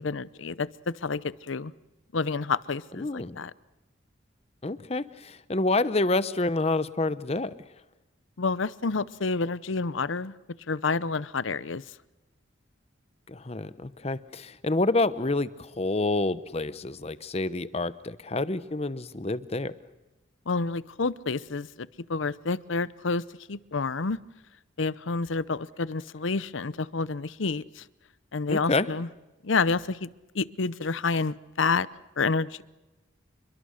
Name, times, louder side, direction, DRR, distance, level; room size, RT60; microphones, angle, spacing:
voice 1, 0.0-1.7 2.1-3.5 8.4-10.3 10.7-11.8 20.5-23.2 23.5-24.2 24.8-27.8 28.3-29.1 29.4-30.1 30.3-31.9 32.2-32.6, left 4 dB, 80° left, 18 dB, 0.7 m, -29 dB
voice 2, 3.0-3.4 4.6-7.5 13.3-19.7 28.5-28.9, left 2 dB, 30° left, 15 dB, 0.8 m, -28 dB
28.0 x 23.0 x 6.5 m, 1.1 s
head